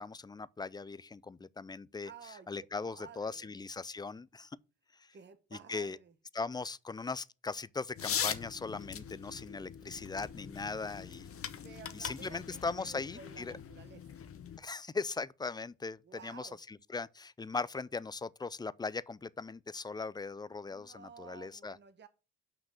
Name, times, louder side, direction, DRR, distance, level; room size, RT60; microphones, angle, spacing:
voice 1, 0.0-2.1 2.5-4.6 5.0-5.1 5.7-6.0 6.3-11.3 11.9-13.5 14.6-21.8, left 4 dB, 15° left, 0.3 m, -39 dB
voice 2, 2.0-2.5 2.8-3.5 5.1-6.1 11.5-14.2 16.0-16.6 20.7-22.1, right 6 dB, 35° right, 1.0 m, -53 dB
sound 1, 7.9-14.6, left 8 dB, 50° left, 0.9 m, -41 dB
6.1 x 5.1 x 5.7 m
cardioid pair, 90°, 30 cm